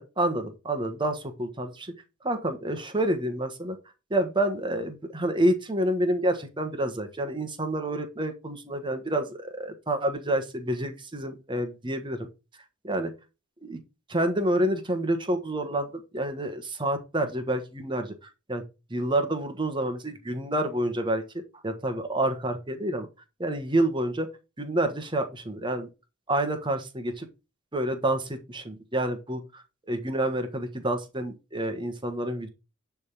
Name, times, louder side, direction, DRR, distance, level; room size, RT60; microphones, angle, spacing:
voice 1, 0.0-1.9 2.2-3.8 4.1-12.3 12.8-13.1 13.6-13.8 14.1-18.1 18.5-18.6 18.9-21.2 21.6-23.1 23.4-24.3 24.6-25.9 26.3-27.3 27.7-32.5, right 1 dB, 25° right, 7 dB, 1.3 m, -28 dB
10.5 x 3.6 x 5.9 m, 0.30 s
head